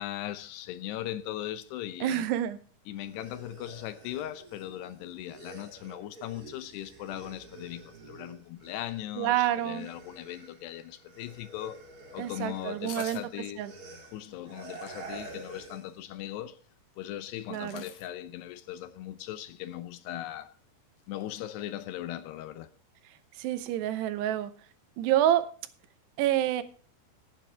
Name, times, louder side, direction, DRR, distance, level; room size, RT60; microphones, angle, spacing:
voice 1, 0.0-2.2 2.9-11.8 12.1-13.6 14.1-16.6 17.0-20.5 21.1-22.7, left 13 dB, 85° left, 3.0 m, -39 dB
voice 2, 2.0-2.6 9.2-9.9 12.2-13.2 13.6-13.7 17.5-17.8 23.4-24.5 25.0-25.5 26.2-26.6, right 12 dB, 85° right, 3.0 m, -27 dB
sound 1, 3.0-9.2 9.5-16.0, right 3 dB, 30° right, 2.2 m, -49 dB
sound 2, 12.9-13.2 14.7-15.0 17.4-18.1 19.7-19.8 20.0-20.1 20.4-20.5 21.0-21.4 21.7-21.8, left 8 dB, 60° left, 2.9 m, -48 dB
16.5 x 9.1 x 3.4 m
omnidirectional pair, 4.7 m